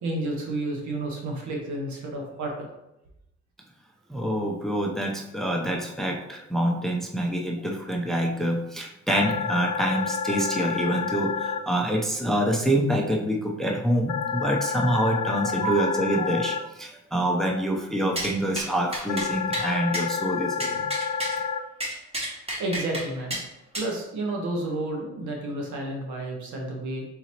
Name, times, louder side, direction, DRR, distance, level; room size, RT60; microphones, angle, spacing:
voice 1, 0.0-2.5 15.3-16.7 18.0-18.3 22.2-22.3 22.6-23.4 23.7-27.0, right 2 dB, 75° right, 0 dB, 1.3 m, -31 dB
voice 2, 4.1-20.9, right 1 dB, ahead, 1 dB, 0.6 m, -26 dB
sound 1, 9.1-11.6 14.1-16.6 19.1-21.6, left 6 dB, 70° left, 0.5 m, -29 dB
sound 2, 18.2-18.3 18.6-18.7 18.9-19.3 19.5-19.7 19.9-20.0 20.6-21.3 21.8-23.0 23.3-23.4 23.7-23.9, right 1 dB, 20° right, 1.5 m, -30 dB
3.9 x 3.9 x 2.9 m, 0.87 s
cardioid pair, 90°, 30 cm